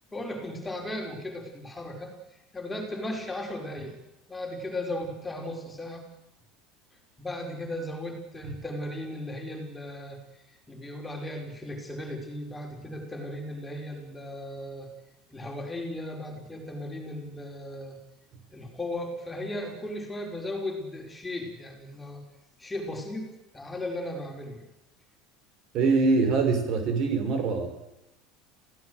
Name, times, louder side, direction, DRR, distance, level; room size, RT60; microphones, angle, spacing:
voice 1, 0.1-4.0 4.3-6.0 7.2-10.2 10.7-14.9 15.3-18.0 18.5-22.2 22.6-24.6 25.8-25.9, left 1 dB, 10° left, 1 dB, 5.2 m, -36 dB
voice 2, 25.7-27.7, right 4 dB, 50° right, 7 dB, 5.8 m, -23 dB
27.5 x 17.0 x 8.1 m, 0.91 s
supercardioid pair, 130°, 0 cm